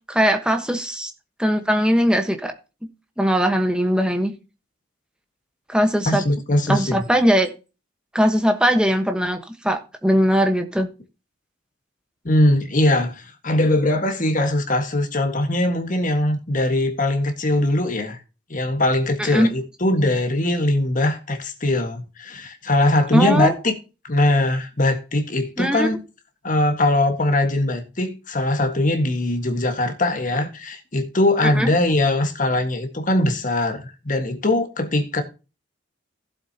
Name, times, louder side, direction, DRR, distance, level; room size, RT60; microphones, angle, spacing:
voice 1, 0.1-1.1 1.4-2.5 3.2-4.3 5.7-6.2 6.7-7.5 8.1-10.9 19.2-19.5 23.1-23.5 25.6-25.9 31.4-31.7, equal, 5° right, 1.2 m, -20 dB
voice 2, 6.0-7.1 12.2-18.2 18.5-23.7 24.0-26.0 26.4-35.2, left 1 dB, 40° left, 1.7 m, -21 dB
15.5 x 7.7 x 2.9 m
head